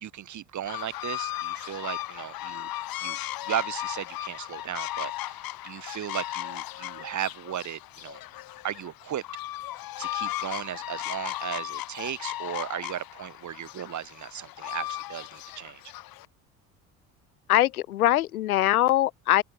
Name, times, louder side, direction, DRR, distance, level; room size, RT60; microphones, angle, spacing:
voice 1, 0.0-2.7 3.0-3.2 3.5-5.4 5.6-8.2 8.6-9.2 10.0-15.8, right 10 dB, 40° right, 2.2 m, -35 dB
sound 1, 0.7-16.3, left 15 dB, 55° left, 2.4 m, -36 dB
voice 2, 17.5-19.4, left 14 dB, 85° left, 0.8 m, -22 dB
open air
hypercardioid pair, 65°, 43 cm